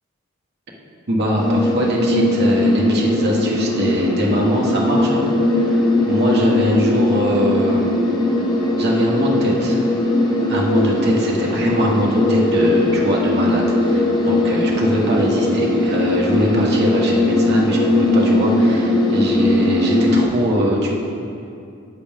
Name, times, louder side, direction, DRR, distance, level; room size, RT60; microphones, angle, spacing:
voice 1, 1.1-5.3 5.5-7.9 8.8-9.9 10.5-20.9, equal, 50° right, -3 dB, 1.3 m, -22 dB
sound 1, 1.4-20.2, left 1 dB, 20° left, 1.0 m, -19 dB
11.0 x 7.8 x 3.6 m, 2.5 s
head